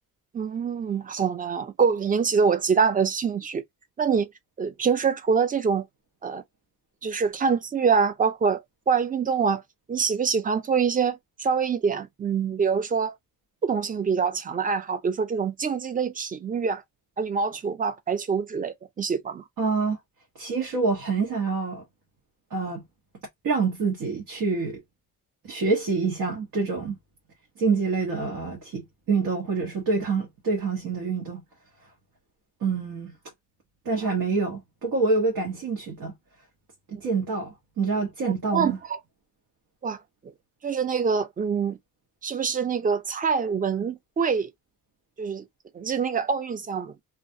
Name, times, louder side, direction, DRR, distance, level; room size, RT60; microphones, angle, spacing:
voice 1, 0.3-3.6 4.0-4.3 4.6-5.9 6.2-6.4 7.0-8.6 8.9-9.6 9.9-13.1 13.6-16.8 17.2-19.4 38.5-39.0 39.8-40.0 40.6-41.8 42.2-44.5 45.2-45.4 45.7-46.9, right 6 dB, 25° right, 0.4 m, -25 dB
voice 2, 19.6-20.0 20.3-21.8 22.5-22.8 23.4-24.8 25.4-27.0 27.6-31.4 32.6-33.1 33.8-36.1 36.9-38.8, right 4 dB, 85° right, 1.0 m, -26 dB
2.4 x 2.1 x 2.6 m
cardioid pair, 115°, 35 cm